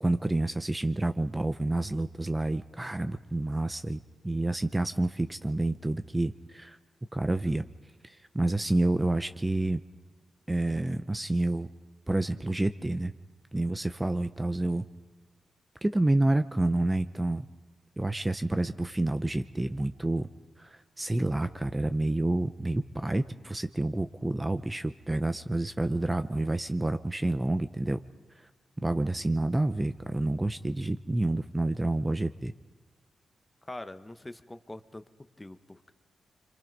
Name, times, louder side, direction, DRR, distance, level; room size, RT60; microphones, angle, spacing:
voice 1, 0.0-6.8 7.1-7.6 8.3-9.8 10.5-11.7 12.1-13.1 13.5-14.8 15.8-17.5 18.0-20.3 20.6-28.0 28.8-32.5, right 2 dB, 15° right, 10 dB, 0.7 m, -29 dB
voice 2, 33.6-35.0 35.4-35.9, left 1 dB, 15° left, 10 dB, 1.0 m, -43 dB
26.5 x 25.0 x 5.3 m, 1.2 s
cardioid pair, 75°, 0 cm